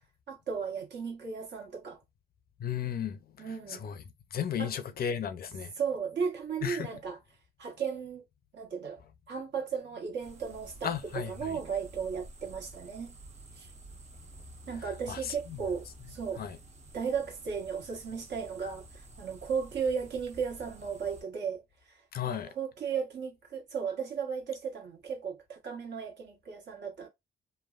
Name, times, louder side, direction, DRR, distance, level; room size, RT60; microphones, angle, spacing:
voice 1, 0.3-2.0 3.4-3.8 4.6-4.7 5.8-7.2 7.6-8.2 8.5-9.0 9.3-13.2 13.6-13.7 14.7-16.5 16.9-27.1, right 6 dB, 65° right, 1.4 m, -35 dB
voice 2, 2.6-4.0 4.3-5.7 6.6-6.9 10.8-11.6 15.1-15.6 16.4-16.6 22.1-22.5, left 8 dB, 50° left, 0.5 m, -35 dB
sound 1, 10.2-21.2, right 1 dB, 35° right, 0.8 m, -51 dB
3.2 x 2.1 x 2.4 m
cardioid pair, 90°, 20 cm